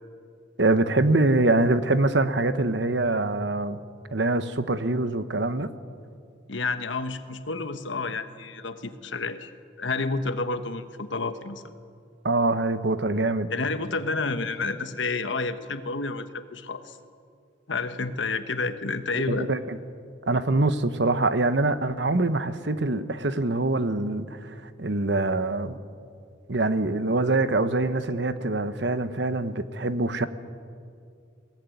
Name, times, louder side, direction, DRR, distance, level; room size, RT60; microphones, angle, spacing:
voice 1, 0.6-3.8 4.1-5.7 12.2-13.5 19.3-19.8 20.3-25.8 26.5-30.3, right 2 dB, 65° right, 11 dB, 1.1 m, -24 dB
voice 2, 6.5-9.5 9.8-11.6 13.5-17.0 17.7-19.5, left 3 dB, 75° left, 10 dB, 1.3 m, -30 dB
21.5 x 18.0 x 9.3 m, 2.3 s
head